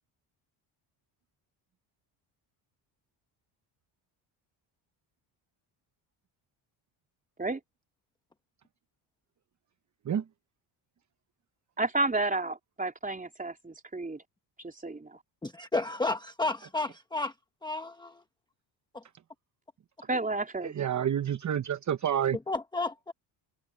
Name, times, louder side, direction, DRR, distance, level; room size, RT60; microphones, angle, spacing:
voice 1, 11.8-14.2 14.6-15.2 20.1-20.7, right 2 dB, 15° right, 3.7 m, -31 dB
voice 2, 15.4-17.3 17.6-18.2 18.9-19.0 22.5-23.1, left 2 dB, 10° left, 0.9 m, -32 dB
voice 3, 20.6-22.4, right 9 dB, 35° right, 0.9 m, -29 dB
cardioid pair, 100°, 49 cm